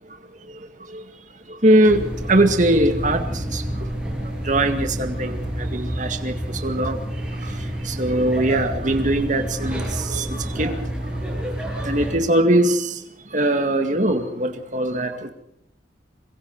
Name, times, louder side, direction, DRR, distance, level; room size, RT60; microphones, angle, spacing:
voice 1, 0.0-1.0 1.5-3.9 4.4-11.2 11.8-15.3, right 1 dB, 40° right, 2.0 m, -22 dB
sound 1, 1.9-12.2, right 1 dB, 5° right, 7.4 m, -28 dB
26.0 x 23.0 x 4.8 m
head